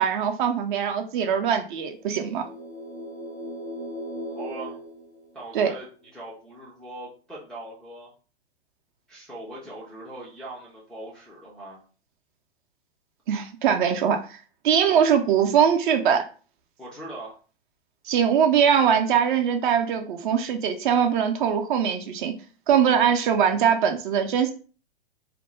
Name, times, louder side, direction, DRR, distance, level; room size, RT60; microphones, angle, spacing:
voice 1, 0.0-2.4 5.5-5.7 13.3-14.4 14.6-16.2 18.1-22.3 22.7-24.5, right 8 dB, 50° right, 5 dB, 0.5 m, -22 dB
sound 1, 2.0-5.8, equal, 85° left, 1.1 m, -38 dB
voice 2, 4.3-4.8 5.3-8.1 9.1-11.8 14.9-15.2 16.8-17.4, right 2 dB, ahead, -8 dB, 0.3 m, -41 dB
2.5 x 2.1 x 3.0 m, 0.37 s
figure-of-eight pair, 110°, 33 cm